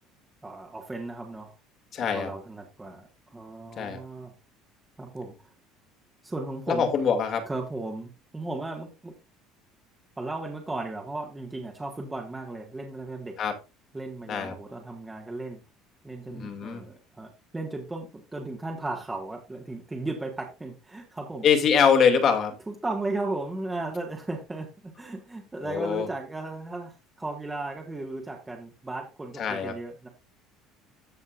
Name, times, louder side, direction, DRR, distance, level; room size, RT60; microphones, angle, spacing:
voice 1, 0.4-1.5 2.1-4.3 5.0-5.5 6.2-6.9 7.5-9.1 10.2-13.4 13.9-15.6 16.0-21.5 22.7-30.1, right 2 dB, 10° right, 0 dB, 1.7 m, -35 dB
voice 2, 1.9-2.3 3.8-4.0 6.7-7.5 13.4-13.5 14.3-14.5 16.3-16.8 21.4-22.5 25.6-26.1 29.4-29.7, left 6 dB, 45° left, 5 dB, 2.6 m, -23 dB
15.0 x 5.3 x 2.6 m, 0.27 s
cardioid pair, 125°, 0 cm